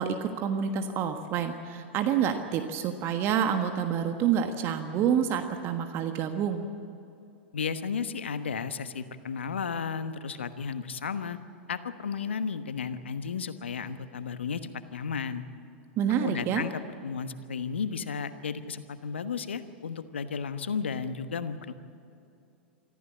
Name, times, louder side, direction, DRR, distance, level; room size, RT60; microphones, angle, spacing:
voice 1, 0.0-6.6 16.0-16.6, right 8 dB, 40° right, 6 dB, 1.4 m, -28 dB
voice 2, 7.5-11.4 11.7-15.4 16.2-21.7, left 6 dB, 75° left, 11 dB, 1.2 m, -34 dB
25.0 x 15.0 x 8.5 m, 2.7 s
figure-of-eight pair, 90°, 6 cm